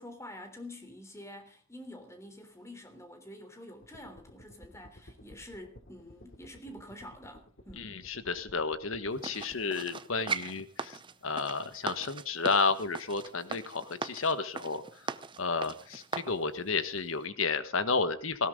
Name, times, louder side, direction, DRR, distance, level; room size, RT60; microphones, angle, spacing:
voice 1, 0.0-7.9, left 1 dB, 15° left, 3.4 m, -47 dB
sound 1, 3.8-9.6, equal, 50° left, 2.7 m, -55 dB
voice 2, 7.7-15.1 15.4-18.5, left 4 dB, 85° left, 1.5 m, -32 dB
sound 2, 9.2-16.4 16.9-17.0, right 4 dB, 25° right, 0.7 m, -39 dB
18.5 x 16.5 x 3.8 m
head